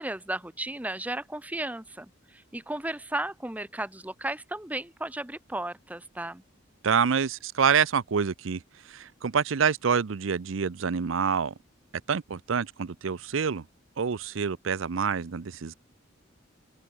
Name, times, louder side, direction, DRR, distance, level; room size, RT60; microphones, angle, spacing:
voice 1, 0.0-6.4, right 1 dB, 10° right, 0.9 m, -34 dB
voice 2, 6.8-11.5 12.1-13.6 14.0-15.7, right 6 dB, 85° right, 0.6 m, -27 dB
open air
head